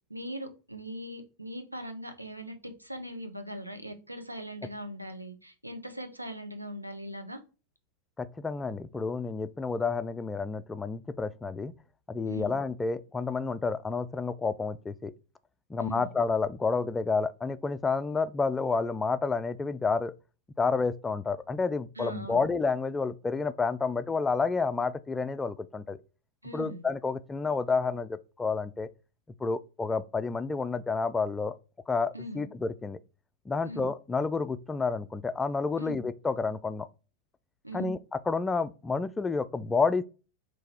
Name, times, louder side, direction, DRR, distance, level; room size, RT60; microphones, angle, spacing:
voice 1, 0.1-7.4 12.3-12.6 15.8-16.1 22.0-22.5 26.4-26.8 32.1-32.5 33.6-33.9 35.8-36.0 37.6-37.9, equal, 85° right, 0.7 m, -40 dB
voice 2, 8.2-11.7 12.1-15.1 15.7-20.1 20.6-26.0 26.5-28.9 29.4-31.6 31.9-33.0 33.5-36.9 37.7-38.0 38.3-40.0, left 4 dB, 15° left, 0.3 m, -30 dB
3.8 x 2.6 x 4.1 m
figure-of-eight pair, 90°, 0 cm